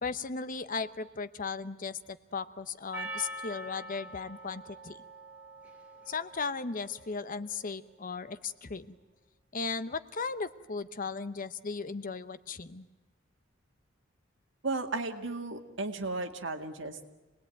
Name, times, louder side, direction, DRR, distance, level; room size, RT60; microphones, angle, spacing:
voice 1, 0.0-5.0 6.1-9.0 9.5-12.9, left 4 dB, 45° left, 13 dB, 0.8 m, -36 dB
Percussion, 2.9-7.5, right 1 dB, 10° right, 3.5 m, -45 dB
voice 2, 14.6-17.0, right 3 dB, 65° right, 5 dB, 2.0 m, -34 dB
27.0 x 19.5 x 9.2 m, 1.1 s
head